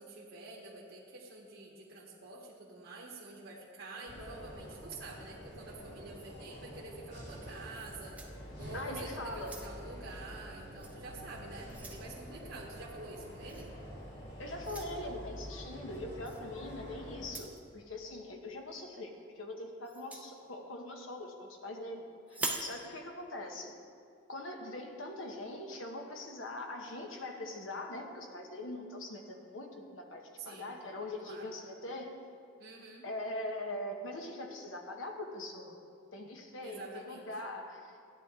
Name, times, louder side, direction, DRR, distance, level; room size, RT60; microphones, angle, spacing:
voice 1, 0.0-8.2 8.6-13.7 30.4-30.7 31.2-31.5 32.6-33.1 36.6-37.3, right 2 dB, 65° right, -5 dB, 1.3 m, -47 dB
sound 1, 4.1-17.3, equal, 55° left, 2.8 m, -47 dB
sound 2, 7.7-8.9 9.3-10.0 10.8-11.0 11.4-12.1 13.5-13.7 14.6-14.9 16.2-16.4 17.2-17.6 19.8-20.3 22.3-22.7, right 2 dB, 5° right, 0.7 m, -42 dB
voice 2, 8.7-9.5 14.4-23.7 24.3-32.1 33.0-35.8 36.1-38.0, left 1 dB, 70° left, 3 dB, 1.1 m, -42 dB
13.5 x 9.6 x 3.7 m, 2.4 s
head